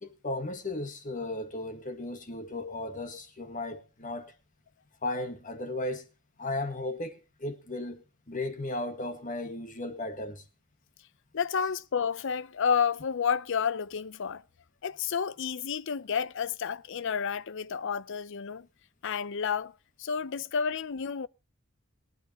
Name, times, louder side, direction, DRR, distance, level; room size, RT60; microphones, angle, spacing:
voice 1, 0.0-4.3 5.0-6.1 6.4-10.4, left 2 dB, 40° left, 1.8 m, -35 dB
voice 2, 11.3-14.4 14.8-18.7 19.0-19.7 20.0-21.3, left 6 dB, 65° left, 0.5 m, -30 dB
22.5 x 9.8 x 2.9 m
head